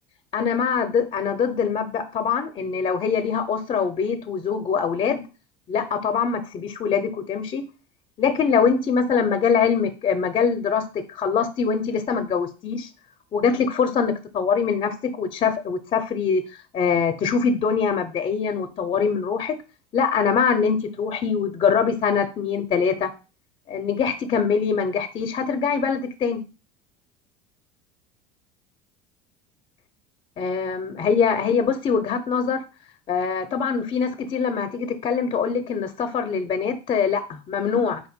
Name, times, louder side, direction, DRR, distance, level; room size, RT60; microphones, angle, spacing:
voice 1, 0.3-5.3 5.7-7.7 8.2-12.9 13.3-16.4 16.7-19.6 19.9-23.1 23.7-26.4 30.4-32.6 33.1-38.0, left 6 dB, 40° left, 7 dB, 0.6 m, -23 dB
4.3 x 2.5 x 4.4 m, 0.32 s
hypercardioid pair, 85°, 15 cm